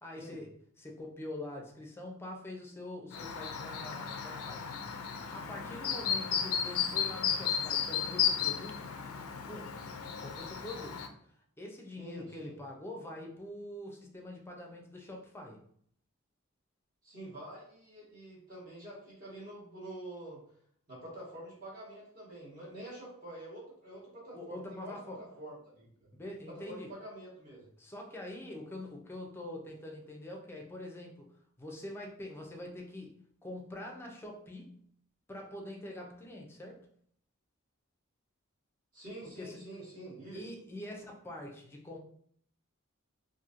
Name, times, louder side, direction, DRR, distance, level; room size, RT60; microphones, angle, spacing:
voice 1, 0.0-5.0 5.3-8.9 9.5-9.8 10.2-11.0 11.6-15.6 24.3-25.2 26.1-26.9 27.8-34.8 35.3-36.8 39.2-39.6 40.3-42.0, left 1 dB, 10° left, 0 dB, 0.5 m, -45 dB
Chirp tweet, 3.1-11.1, left 7 dB, 85° left, 0.4 m, -34 dB
voice 2, 12.0-12.5 17.0-20.4 20.9-26.1 26.5-27.6 38.9-40.4, right 1 dB, 40° right, -8 dB, 1.1 m, -47 dB
2.9 x 2.6 x 2.5 m, 0.63 s
head